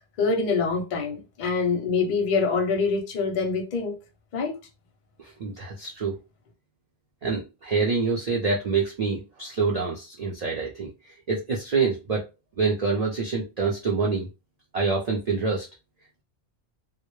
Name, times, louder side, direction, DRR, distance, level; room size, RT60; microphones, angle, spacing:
voice 1, 0.2-4.0 4.3-4.6, left 4 dB, 55° left, 0.6 m, -25 dB
voice 2, 5.4-6.1 7.2-10.9 11.3-12.2 12.6-14.2 14.7-15.7, right 4 dB, 55° right, 0.4 m, -26 dB
2.1 x 2.0 x 3.0 m
omnidirectional pair, 1.2 m